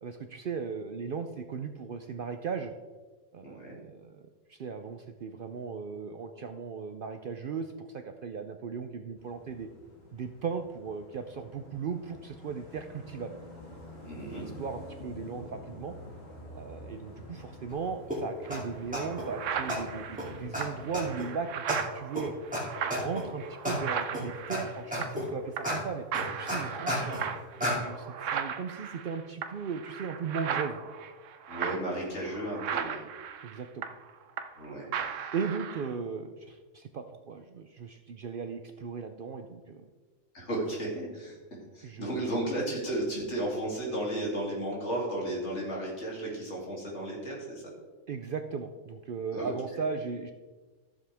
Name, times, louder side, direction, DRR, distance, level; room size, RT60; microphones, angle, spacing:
voice 1, 0.0-2.7 3.3-4.2 4.5-9.7 10.1-13.4 14.2-16.0 16.5-22.3 22.7-26.0 26.4-27.2 27.6-30.8 31.7-31.8 33.4-33.9 35.3-39.8 41.8-42.3 48.1-50.3, right 5 dB, 60° right, 7 dB, 0.6 m, -37 dB
voice 2, 3.4-3.8 14.0-14.5 31.5-33.0 34.5-34.9 40.3-41.4 41.7-47.6 49.3-49.8, right 1 dB, 65° left, -3 dB, 3.1 m, -34 dB
sound 1, 9.2-21.1, left 1 dB, 85° left, 2.8 m, -48 dB
sound 2, 18.1-18.2 18.5-18.6 18.9-19.3 19.7-19.8 20.2-20.3 20.5-20.6 20.9-21.3 21.7-21.8 22.2-22.3 22.5-22.6 22.9-23.2 23.7-23.8 24.1-24.6 24.9-25.3 25.6-25.8 26.1-27.2 27.6-27.8, equal, 5° right, 2.7 m, -31 dB
sound 3, 18.5-18.6 19.0-25.3 25.6-25.8 26.1-34.6 34.9-35.9, right 7 dB, 75° right, 1.0 m, -37 dB
14.0 x 7.4 x 3.4 m, 1.3 s
omnidirectional pair, 1.3 m